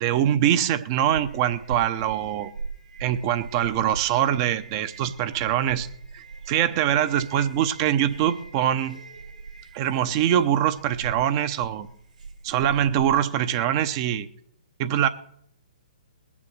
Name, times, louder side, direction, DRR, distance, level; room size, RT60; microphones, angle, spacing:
voice 1, 0.0-2.5 3.0-5.9 6.1-9.0 9.7-11.9 12.4-14.3 14.8-15.1, right 10 dB, 35° right, 0.8 m, -23 dB
sound 1, 1.1-13.4, right 4 dB, 80° right, 3.8 m, -40 dB
20.5 x 7.1 x 6.6 m
figure-of-eight pair, 125°, 4 cm